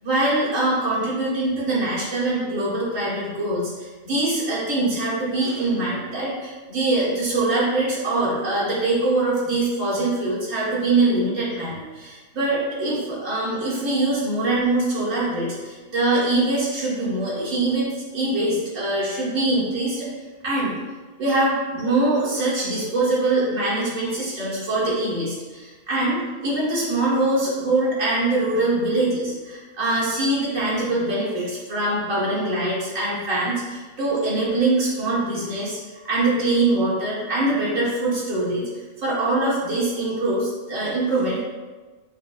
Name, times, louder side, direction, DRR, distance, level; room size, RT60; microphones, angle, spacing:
voice 1, 0.0-17.9 18.1-20.1 20.4-20.8 21.2-38.6 39.0-41.4, right 2 dB, 65° right, -8 dB, 1.9 m, -23 dB
6.2 x 2.6 x 2.4 m, 1.3 s
omnidirectional pair, 1.5 m